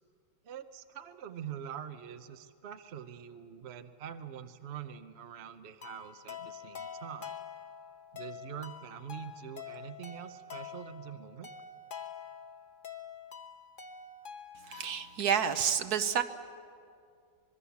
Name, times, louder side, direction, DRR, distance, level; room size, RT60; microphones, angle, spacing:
voice 1, 0.4-7.3 8.1-11.5, right 9 dB, 50° right, 9 dB, 0.8 m, -44 dB
sound 1, 5.8-15.2, left 7 dB, 35° left, 1.1 m, -46 dB
voice 2, 14.7-16.2, right 8 dB, 65° right, 10 dB, 1.3 m, -29 dB
25.0 x 21.5 x 7.1 m, 2.4 s
omnidirectional pair, 1.9 m